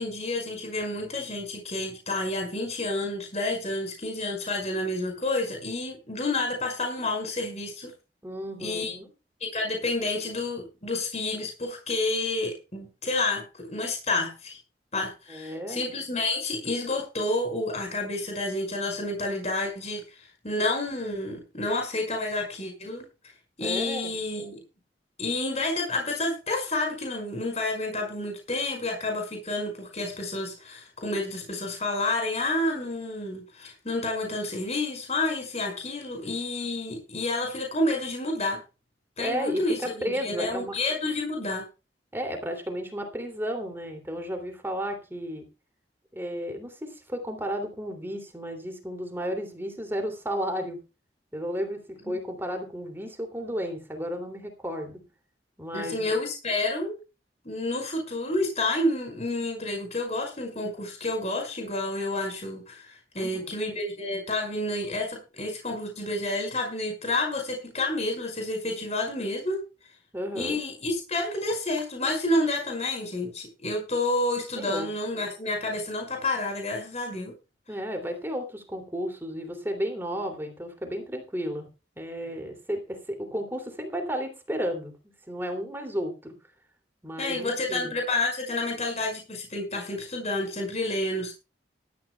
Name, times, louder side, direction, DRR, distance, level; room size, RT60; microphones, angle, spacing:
voice 1, 0.0-7.9 8.6-8.9 9.5-14.6 14.9-23.0 23.6-24.6 25.2-38.6 39.2-41.7 52.1-52.2 55.7-57.0 57.5-69.7 70.4-77.3 87.2-91.3, left 2 dB, 40° left, 3 dB, 5.4 m, -29 dB
voice 2, 8.2-9.1 15.3-15.8 23.6-24.1 39.2-40.8 42.1-45.4 46.1-50.8 51.3-55.0 55.6-56.1 63.2-63.6 70.1-70.6 74.6-74.9 77.7-81.7 82.0-84.9 85.3-86.3 87.0-87.9, equal, 15° right, 4 dB, 2.8 m, -33 dB
18.5 x 13.0 x 2.3 m, 0.30 s
head